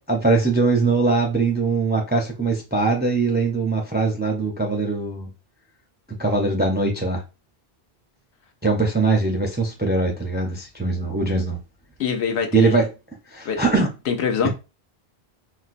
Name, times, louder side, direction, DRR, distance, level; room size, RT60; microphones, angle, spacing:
voice 1, 0.1-5.3 6.1-7.2 8.6-11.6 12.5-12.9 13.3-13.9 14.4-14.5, right 3 dB, 15° right, 0.3 m, -21 dB
voice 2, 12.0-12.8 13.4-13.6 14.1-14.5, left 6 dB, 85° left, 0.9 m, -23 dB
4.3 x 2.0 x 2.5 m
omnidirectional pair, 1.1 m